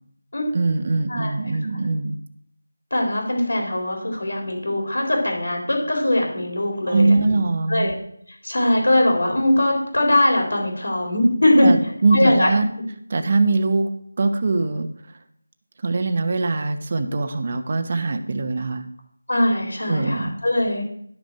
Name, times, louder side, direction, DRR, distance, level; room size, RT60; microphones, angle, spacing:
voice 1, 0.5-2.2 6.9-7.9 11.6-12.7 13.1-13.9 14.2-14.9 15.8-18.9 19.9-20.3, right 3 dB, 35° right, 7 dB, 0.9 m, -22 dB
voice 2, 2.9-7.3 7.7-7.9 8.4-11.8 12.1-12.5 19.3-20.8, left 1 dB, 75° left, 2 dB, 4.1 m, -20 dB
11.5 x 6.5 x 5.6 m, 0.66 s
figure-of-eight pair, 175°, 0 cm